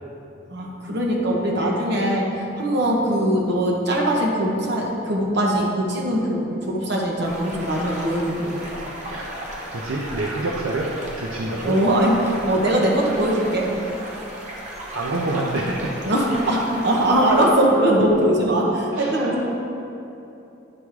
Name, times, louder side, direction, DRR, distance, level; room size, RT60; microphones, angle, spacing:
voice 1, 0.5-2.3 2.6-8.6 11.6-13.7 16.1-19.5, right 1 dB, 55° right, -2 dB, 1.1 m, -21 dB
sound 1, 7.2-17.5, right 1 dB, 35° right, 0.9 m, -35 dB
voice 2, 9.7-10.9 11.2-11.8 14.9-15.9 18.9-19.5, right 2 dB, 75° right, -2 dB, 0.6 m, -27 dB
9.6 x 3.6 x 4.8 m, 2.9 s
head